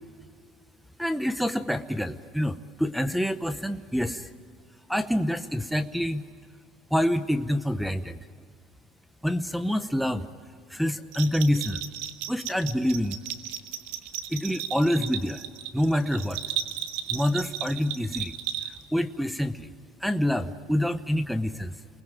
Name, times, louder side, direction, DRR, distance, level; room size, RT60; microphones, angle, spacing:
voice 1, 1.0-4.3 4.9-6.2 6.9-8.2 9.2-10.3 10.7-11.9 12.3-13.2 14.3-15.4 15.7-16.4 17.1-18.4 18.9-19.7 20.0-21.8, equal, ahead, 8 dB, 0.9 m, -27 dB
Bell, 11.1-19.0, right 11 dB, 90° right, 1.9 m, -35 dB
29.0 x 20.5 x 9.1 m, 2.2 s
cardioid pair, 145°, 4 cm